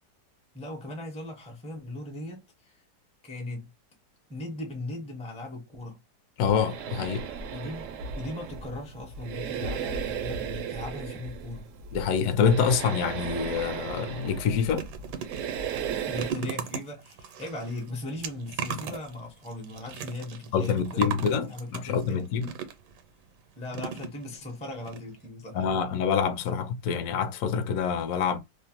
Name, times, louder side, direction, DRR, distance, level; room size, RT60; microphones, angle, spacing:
voice 1, 0.5-2.8 3.2-3.7 4.3-6.0 7.5-11.7 16.0-21.2 21.5-22.3 23.6-25.7, left 2 dB, 10° left, 0.4 m, -38 dB
voice 2, 6.4-7.2 11.9-14.8 20.5-22.5 25.5-28.4, left 7 dB, 65° left, 0.9 m, -26 dB
sound 1, 6.4-16.3, right 7 dB, 70° right, 0.7 m, -36 dB
sound 2, 14.2-23.0 23.7-24.5 24.8-25.0 25.2-25.3, right 7 dB, 85° right, 1.3 m, -38 dB
2.9 x 2.0 x 2.8 m
omnidirectional pair, 1.8 m